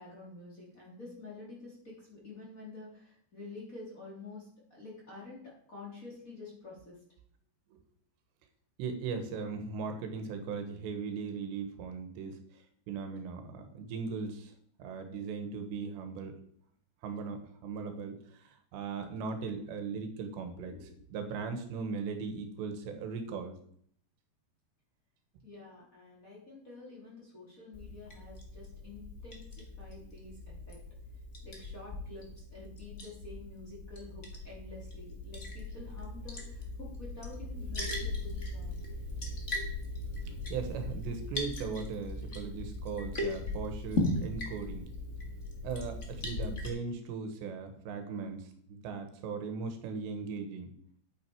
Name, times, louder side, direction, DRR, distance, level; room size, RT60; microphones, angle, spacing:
voice 1, 0.0-7.0 20.5-20.9 21.3-21.4 25.4-30.8 31.4-38.8, left 3 dB, 20° left, -5 dB, 3.3 m, -49 dB
voice 2, 8.8-14.5 14.8-16.4 17.0-20.8 21.1-23.6 40.5-44.9 45.6-50.7, right 5 dB, 80° right, 6 dB, 3.5 m, -38 dB
Liquid, 27.7-46.7, left 2 dB, 55° left, 0.7 m, -39 dB
9.9 x 8.8 x 4.7 m, 0.64 s
omnidirectional pair, 5.0 m